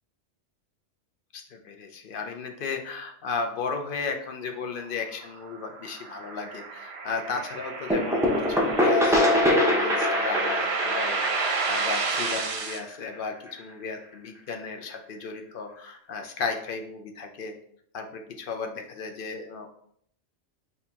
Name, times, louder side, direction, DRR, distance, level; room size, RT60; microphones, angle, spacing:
voice 1, 1.3-17.5 17.9-19.7, left 4 dB, 60° left, 5 dB, 0.6 m, -35 dB
sound 1, 5.0-12.8, right 4 dB, 65° right, 0.8 m, -31 dB
sound 2, 7.9-13.5, left 1 dB, 5° right, 0.4 m, -24 dB
6.2 x 2.8 x 2.8 m, 0.68 s
omnidirectional pair, 1.2 m